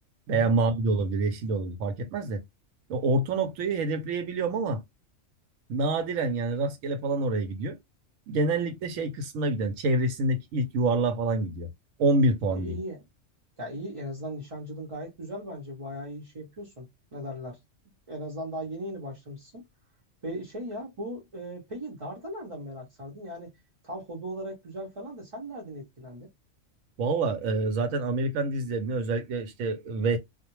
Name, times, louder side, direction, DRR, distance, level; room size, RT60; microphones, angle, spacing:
voice 1, 0.3-2.4 2.9-4.8 5.7-7.8 8.3-11.7 12.0-12.8 27.0-30.2, right 2 dB, 90° right, 1.0 m, -27 dB
voice 2, 12.6-13.0 13.6-16.9 17.1-17.6 18.1-19.7 20.2-23.5 23.8-26.3, equal, 30° right, 0.7 m, -38 dB
2.4 x 2.1 x 2.9 m
omnidirectional pair, 1.3 m